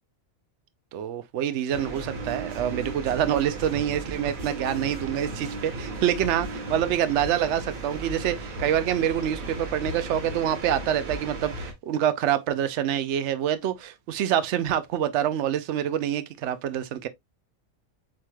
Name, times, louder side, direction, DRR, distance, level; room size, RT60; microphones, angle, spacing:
voice 1, 0.9-17.1, right 10 dB, 65° right, 0.9 m, -26 dB
sound 1, 1.7-11.7, right 2 dB, 85° right, 1.7 m, -35 dB
7.5 x 3.2 x 2.2 m
omnidirectional pair, 1.4 m